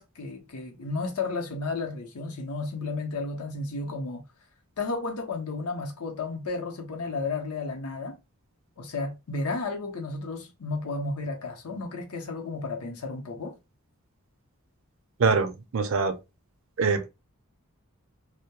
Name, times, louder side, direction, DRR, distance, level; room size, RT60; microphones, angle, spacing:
voice 1, 0.0-4.2 4.8-8.2 8.8-13.6, left 3 dB, 90° left, 0.7 m, -33 dB
voice 2, 15.2-16.2 16.8-17.1, right 4 dB, 60° right, 0.5 m, -24 dB
2.2 x 2.1 x 2.8 m
head